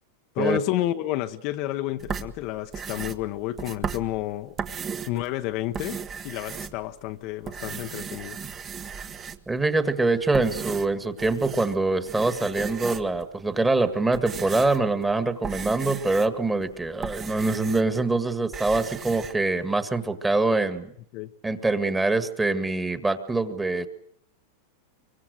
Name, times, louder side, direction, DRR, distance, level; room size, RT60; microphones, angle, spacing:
voice 1, 0.3-4.5 5.1-6.0 6.2-8.4 21.1-21.3, left 14 dB, 50° left, 1.0 m, -30 dB
sound 1, 2.0-5.2 5.6-7.1 7.4-9.6 10.1-11.8 12.1-13.3 13.8-18.0 18.3-19.3, right 6 dB, 25° right, 1.3 m, -36 dB
voice 2, 9.5-20.9 21.4-23.9, right 3 dB, 10° right, 1.8 m, -24 dB
24.5 x 24.5 x 6.5 m
supercardioid pair, 130°, 0 cm